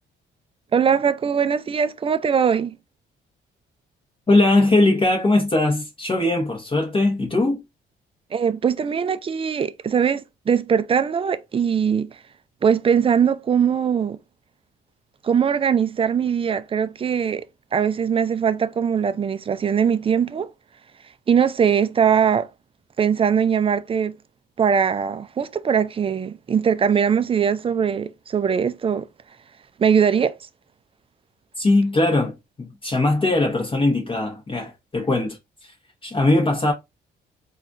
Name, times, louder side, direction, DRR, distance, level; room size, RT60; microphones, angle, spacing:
voice 1, 0.7-2.8 8.3-12.1 12.6-14.2 15.2-17.4 17.7-20.5 21.3-22.5 23.0-24.1 24.6-29.1 29.8-30.4, right 7 dB, 30° right, 0.4 m, -21 dB
voice 2, 4.3-7.6 31.6-32.3 32.6-35.7 36.0-36.7, left 2 dB, 25° left, 1.0 m, -20 dB
4.1 x 2.4 x 2.5 m
cardioid pair, 90°, 20 cm